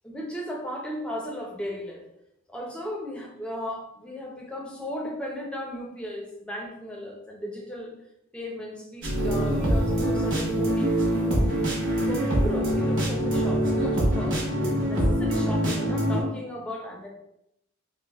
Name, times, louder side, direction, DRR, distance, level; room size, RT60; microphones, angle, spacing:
voice 1, 0.0-2.0 2.5-7.9 8.3-11.6 12.0-17.1, left 1 dB, 5° left, -1 dB, 0.5 m, -36 dB
sound 1, 9.0-16.2, right 1 dB, 60° right, 1.0 m, -24 dB
5.0 x 2.0 x 2.3 m, 0.81 s
head